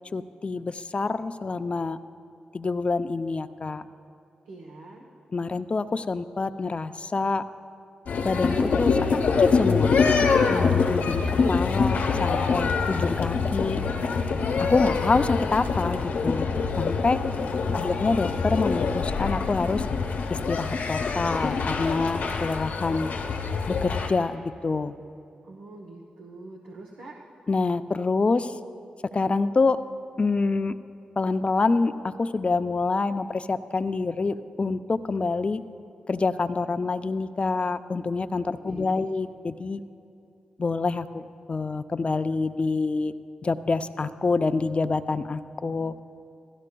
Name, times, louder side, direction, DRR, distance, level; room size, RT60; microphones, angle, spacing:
voice 1, 0.1-2.0 2.5-3.8 5.3-7.4 8.2-9.0 9.4-9.9 10.5-11.2 11.5-13.8 14.6-17.2 17.7-19.8 20.3-23.1 23.7-24.9 27.5-28.5 29.1-29.8 30.2-30.7 31.2-31.9 32.2-35.6 36.1-39.8 40.6-41.2 41.5-43.1 43.4-45.9, left 3 dB, 40° left, 10 dB, 0.5 m, -26 dB
voice 2, 4.5-5.0 17.4-17.9 25.4-27.2 38.6-39.0, right 2 dB, 80° right, -2 dB, 0.9 m, -44 dB
sound 1, 8.1-24.1, left 5 dB, 75° left, 1.1 m, -25 dB
16.5 x 13.0 x 2.3 m, 2.6 s
supercardioid pair, 40°, 3 cm